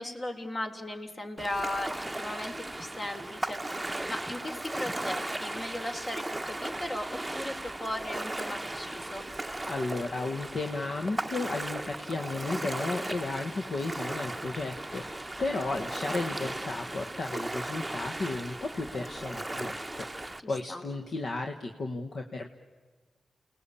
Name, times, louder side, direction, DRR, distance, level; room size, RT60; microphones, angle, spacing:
voice 1, 0.0-3.8 4.1-9.3 15.6-15.9 20.4-20.8, left 1 dB, 45° left, 4 dB, 3.4 m, -37 dB
Ocean, 1.4-20.4, right 1 dB, 15° right, 0.8 m, -37 dB
voice 2, 9.7-22.5, left 3 dB, 65° left, 3 dB, 1.4 m, -34 dB
29.0 x 19.0 x 8.5 m, 1.4 s
cardioid pair, 55°, 0 cm